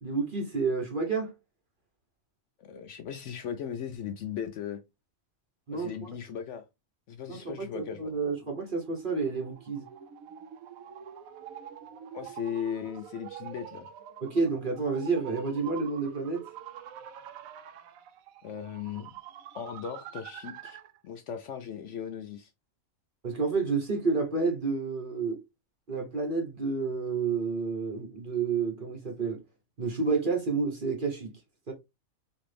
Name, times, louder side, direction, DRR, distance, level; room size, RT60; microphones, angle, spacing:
voice 1, 0.0-1.3 5.7-5.9 7.3-9.9 14.2-16.5 23.2-25.4 25.9-29.4 29.8-31.3 31.7-31.8, right 4 dB, 40° right, 0.9 m, -30 dB
voice 2, 2.6-4.8 5.7-6.6 7.1-8.1 12.1-13.9 18.4-19.1 19.5-20.8 21.0-22.5, left 8 dB, 65° left, 0.8 m, -37 dB
sound 1, 8.3-21.0, right 9 dB, 75° right, 1.0 m, -46 dB
4.1 x 2.5 x 3.3 m
omnidirectional pair, 1.5 m